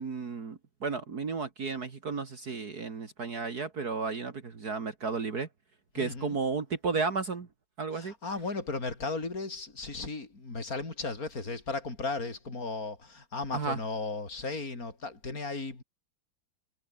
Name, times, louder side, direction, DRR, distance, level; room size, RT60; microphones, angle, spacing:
voice 1, 0.0-5.5 5.9-7.5 7.8-8.1 13.5-13.8, right 4 dB, 50° right, 2.6 m, -33 dB
voice 2, 6.0-6.4 7.9-15.8, left 3 dB, 45° left, 5.1 m, -36 dB
omnidirectional pair, 2.2 m